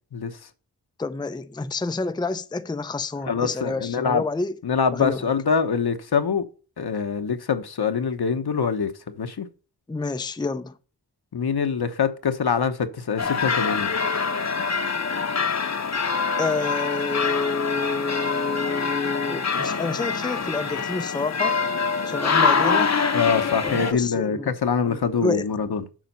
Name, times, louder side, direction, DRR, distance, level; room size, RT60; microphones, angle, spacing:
voice 1, 1.0-4.5 4.9-5.2 9.9-10.7 16.4-21.6 22.1-23.0 23.6-24.5 24.9-25.4, left 3 dB, 10° left, 0.5 m, -28 dB
voice 2, 3.3-4.2 4.6-6.4 6.8-9.5 11.3-13.9 23.1-25.9, left 6 dB, 70° left, 1.1 m, -24 dB
sound 1, 13.2-23.9, left 5 dB, 40° left, 0.9 m, -25 dB
7.5 x 5.0 x 5.6 m
cardioid pair, 50°, 40 cm